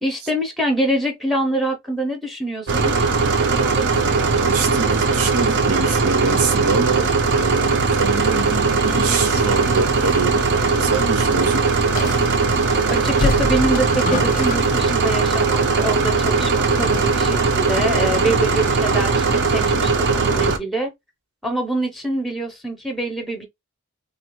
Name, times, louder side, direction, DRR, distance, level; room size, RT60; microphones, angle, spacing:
voice 1, 0.0-2.9 12.9-20.9 21.4-23.4, right 1 dB, ahead, 0.7 m, -25 dB
sound 1, 2.7-20.6, right 4 dB, 55° right, 0.5 m, -19 dB
voice 2, 4.3-7.1 7.4-11.6, right 4 dB, 85° right, 0.8 m, -25 dB
sound 2, 8.8-11.1 11.4-11.5 12.0-12.7 13.1-15.0 15.3-15.5, left 3 dB, 35° left, 0.4 m, -28 dB
3.2 x 2.4 x 2.9 m
head